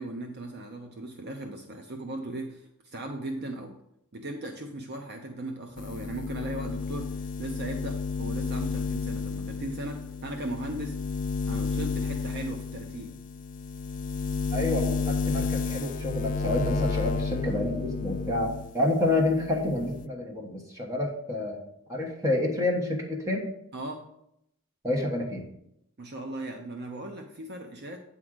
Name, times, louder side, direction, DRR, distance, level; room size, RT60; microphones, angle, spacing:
voice 1, 0.0-3.8 4.1-11.0 11.5-13.1 23.7-24.1 26.0-28.0, right 1 dB, 50° right, 4 dB, 0.7 m, -38 dB
sound 1, 5.8-18.7 19.1-20.1, left 4 dB, 35° left, 0.4 m, -32 dB
voice 2, 14.5-21.6 21.9-23.5 24.8-25.5, left 2 dB, 15° right, -1 dB, 1.2 m, -28 dB
8.9 x 3.7 x 6.2 m, 0.78 s
head